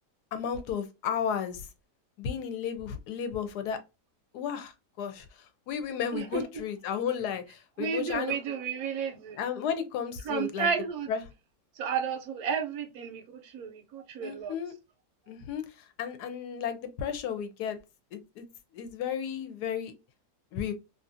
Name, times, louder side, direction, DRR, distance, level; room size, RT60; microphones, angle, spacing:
voice 1, 0.3-1.7 2.2-3.8 4.3-8.4 9.4-10.7 11.1-11.2 14.2-14.7 15.3-17.8 18.1-18.5 18.7-19.9 20.5-20.7, left 8 dB, 75° left, 1.1 m, -33 dB
voice 2, 6.1-6.4 7.8-9.4 10.2-11.1 11.8-14.5, right 6 dB, 70° right, 1.0 m, -32 dB
2.7 x 2.5 x 2.5 m
omnidirectional pair, 1.8 m